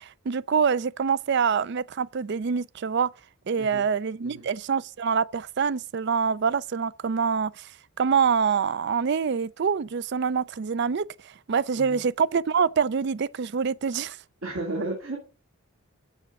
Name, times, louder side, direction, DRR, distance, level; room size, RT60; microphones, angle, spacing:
voice 1, 0.0-3.1 3.5-7.7 8.0-11.1 11.5-14.2, right 6 dB, 55° right, 0.4 m, -25 dB
voice 2, 14.4-15.2, right 2 dB, 70° right, 2.4 m, -33 dB
7.1 x 6.7 x 6.0 m
head